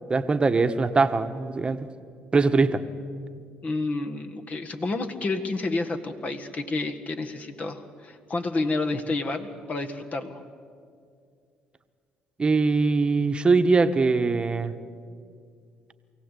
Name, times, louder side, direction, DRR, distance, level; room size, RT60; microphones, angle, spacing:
voice 1, 0.1-1.8 2.3-2.8 12.4-14.7, right 4 dB, 30° right, 9 dB, 1.2 m, -22 dB
voice 2, 3.6-10.4, left 3 dB, 40° left, 6 dB, 1.7 m, -30 dB
23.5 x 16.5 x 8.4 m, 2.2 s
supercardioid pair, 75°, 4 cm